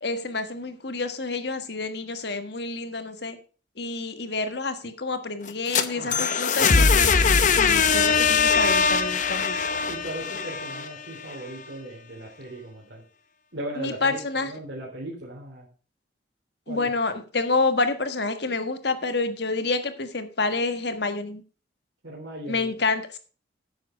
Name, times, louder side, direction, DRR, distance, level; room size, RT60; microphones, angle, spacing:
voice 1, 0.0-3.4 3.8-7.1 7.5-9.7 13.8-14.5 16.7-21.4 22.5-23.2, left 3 dB, 60° left, 9 dB, 1.5 m, -28 dB
sound 1, 5.5-11.4, left 5 dB, 40° left, 0.8 m, -21 dB
voice 2, 6.0-6.3 9.9-13.0 13.5-15.7 16.7-16.9 22.0-22.7, right 1 dB, 70° right, -5 dB, 3.6 m, -38 dB
10.5 x 7.7 x 5.1 m, 0.38 s
head